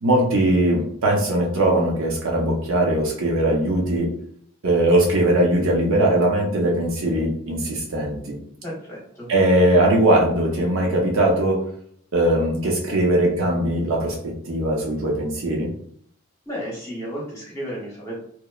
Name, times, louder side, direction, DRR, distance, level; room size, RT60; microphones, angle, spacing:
voice 1, 0.0-4.1 4.6-8.4 9.3-11.6 12.1-15.7, right 1 dB, 65° right, -1 dB, 0.6 m, -20 dB
voice 2, 8.6-9.3 16.5-18.1, equal, 15° left, -5 dB, 0.8 m, -33 dB
3.0 x 2.0 x 2.3 m, 0.64 s
head